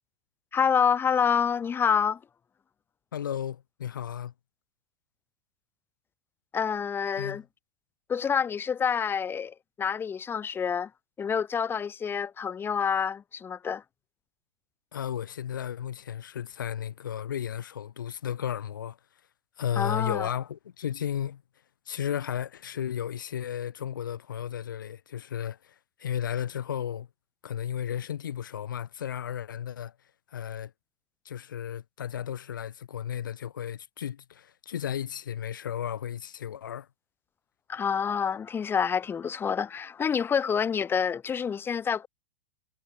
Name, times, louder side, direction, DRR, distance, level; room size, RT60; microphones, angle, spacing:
voice 1, 0.5-2.2 6.5-7.4 8.1-10.9 11.2-13.8 19.8-20.3 37.7-42.1, left 7 dB, 20° left, 1.1 m, -27 dB
voice 2, 3.1-4.3 7.2-7.4 14.9-19.0 19.6-21.4 21.9-27.1 27.4-29.9 30.3-30.7 31.2-36.9, left 9 dB, 75° left, 3.4 m, -34 dB
hypercardioid pair, 100°, 11 cm